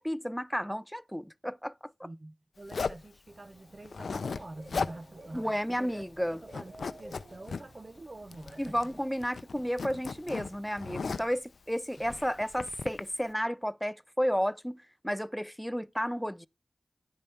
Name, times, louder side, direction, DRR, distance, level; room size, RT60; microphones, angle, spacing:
voice 1, 0.0-2.1 5.3-6.4 8.6-16.5, equal, 5° left, 0.4 m, -32 dB
voice 2, 2.0-5.9 6.3-9.0 12.0-12.1, right 2 dB, 40° right, 0.6 m, -47 dB
Zipper (clothing), 2.7-3.1 3.8-4.4 4.7-5.0 5.3-5.4 5.8-6.2 6.5-7.6 8.3-9.0 9.2-11.4 12.0-13.0, left 5 dB, 90° left, 0.4 m, -36 dB
Dog / Bird, 3.3-11.3, right 1 dB, 70° right, 3.2 m, -54 dB
11.0 x 5.3 x 4.4 m
cardioid pair, 45°, 0 cm